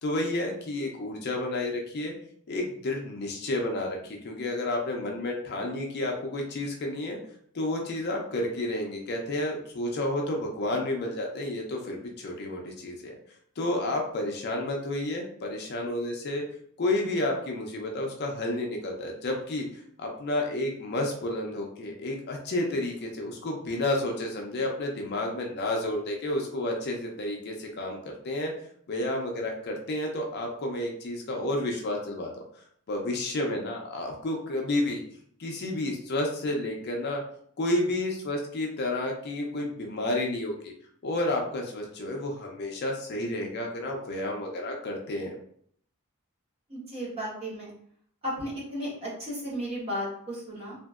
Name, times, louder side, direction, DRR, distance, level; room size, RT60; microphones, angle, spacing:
voice 1, 0.0-2.1 2.5-7.2 7.5-13.1 13.6-16.4 16.8-28.5 28.9-32.3 32.9-35.0 35.4-37.2 37.6-40.7 41.0-45.4, left 1 dB, 45° left, 1 dB, 0.5 m, -31 dB
voice 2, 46.7-47.7 48.2-50.8, equal, 25° right, -6 dB, 1.1 m, -34 dB
2.9 x 2.5 x 2.3 m, 0.62 s
head